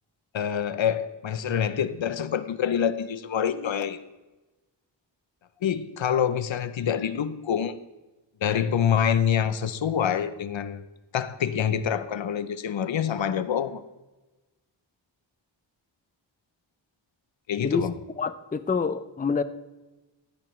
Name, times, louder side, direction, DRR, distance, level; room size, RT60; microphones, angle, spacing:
voice 1, 0.3-4.0 5.6-7.7 8.4-10.8 11.1-13.8 17.5-17.9, left 8 dB, 75° left, 13 dB, 0.7 m, -26 dB
voice 2, 18.2-19.4, left 5 dB, 20° left, 12 dB, 0.5 m, -27 dB
12.5 x 10.5 x 3.1 m, 1.1 s
wide cardioid pair, 80°, 46 cm